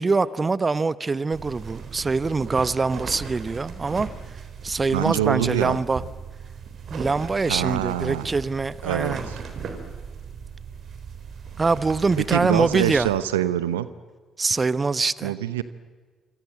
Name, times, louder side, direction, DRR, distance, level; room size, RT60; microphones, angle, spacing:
voice 1, 0.0-4.1 4.6-6.0 6.9-9.2 11.6-13.1 14.4-15.3, right 4 dB, 30° right, 18 dB, 0.9 m, -24 dB
sound 1, 1.3-13.2, right 6 dB, 55° right, 3.8 m, -38 dB
voice 2, 4.9-5.8 7.5-8.3 8.8-9.4 12.2-13.9 15.2-15.6, right 12 dB, 80° right, 15 dB, 0.9 m, -25 dB
28.0 x 25.5 x 7.8 m, 1.4 s
figure-of-eight pair, 45°, 0 cm